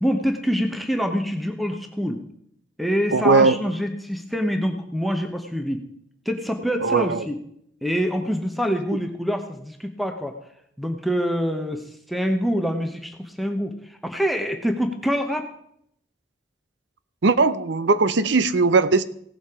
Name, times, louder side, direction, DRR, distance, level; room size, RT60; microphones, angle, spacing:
voice 1, 0.0-2.2 2.8-5.8 6.3-7.4 7.8-10.4 10.8-15.5, equal, ahead, 4 dB, 0.9 m, -25 dB
voice 2, 3.1-3.6 6.8-7.2 17.2-19.0, right 4 dB, 75° right, 14 dB, 0.6 m, -19 dB
17.0 x 7.2 x 4.9 m, 0.72 s
head